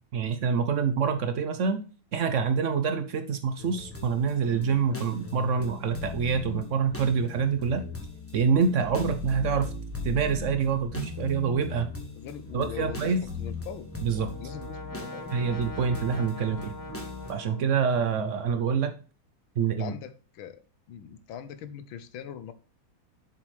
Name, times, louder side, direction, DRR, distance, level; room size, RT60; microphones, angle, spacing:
voice 1, 0.1-1.8 2.1-7.8 8.3-9.7 10.0-11.9 12.5-13.2 14.0-14.3 15.3-16.7 17.3-18.9 19.6-19.9, right 6 dB, 85° right, 8 dB, 0.6 m, -26 dB
sound 1, 3.6-17.3, left 4 dB, 10° left, 1.3 m, -39 dB
voice 2, 12.1-13.9 14.4-15.3 19.8-20.6 20.9-22.5, left 9 dB, 75° left, 12 dB, 1.7 m, -41 dB
Brass instrument, 13.6-18.4, equal, 30° left, 0.3 m, -43 dB
7.4 x 7.4 x 3.2 m, 0.36 s
omnidirectional pair, 2.2 m